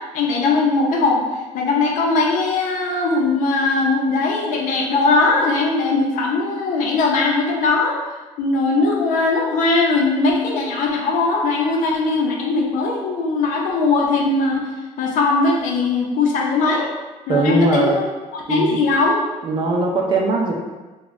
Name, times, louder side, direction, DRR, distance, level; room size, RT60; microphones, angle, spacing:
voice 1, 0.1-1.2 1.5-8.0 8.4-14.6 15.0-16.9 17.3-18.0 18.5-19.2, left 3 dB, 70° left, -1 dB, 0.7 m, -19 dB
voice 2, 17.3-18.0 18.5-18.8 19.4-20.5, right 2 dB, 35° right, 0 dB, 0.5 m, -19 dB
3.7 x 2.3 x 3.1 m, 1.2 s
cardioid pair, 155°, 13 cm